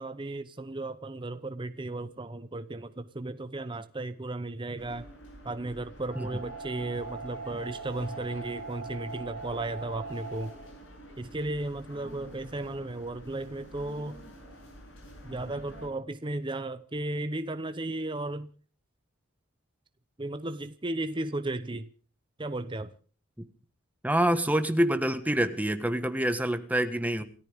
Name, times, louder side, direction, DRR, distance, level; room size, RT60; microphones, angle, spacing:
voice 1, 0.0-5.1 5.4-10.5 11.2-14.2 15.2-18.5 20.2-21.9 22.4-22.9, right 2 dB, 20° right, 0.7 m, -35 dB
sound 1, 4.8-15.9, right 2 dB, 60° left, 6.9 m, -43 dB
voice 2, 24.0-27.2, right 1 dB, 5° right, 1.4 m, -26 dB
28.5 x 14.0 x 3.5 m
head